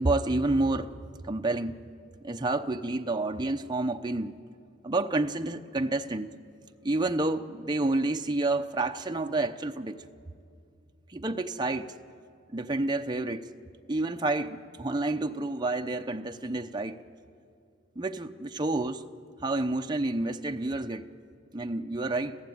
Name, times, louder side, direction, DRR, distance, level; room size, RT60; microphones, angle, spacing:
voice 1, 0.0-1.8 2.2-4.4 4.8-6.3 6.8-10.0 11.1-11.9 12.5-13.4 13.9-17.0 18.0-19.0 19.4-21.1 21.5-22.4, right 2 dB, 20° right, 4 dB, 0.7 m, -29 dB
29.0 x 14.5 x 9.4 m, 2.4 s
head